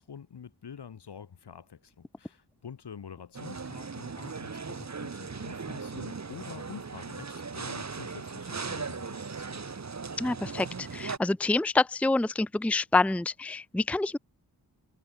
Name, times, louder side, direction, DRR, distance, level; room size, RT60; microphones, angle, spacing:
voice 1, 0.0-9.7, left 7 dB, 80° left, 5.5 m, -47 dB
sound 1, 3.3-11.2, right 5 dB, 45° right, 2.4 m, -38 dB
voice 2, 10.2-14.2, left 3 dB, 5° left, 0.6 m, -27 dB
cardioid pair, 65°, 40 cm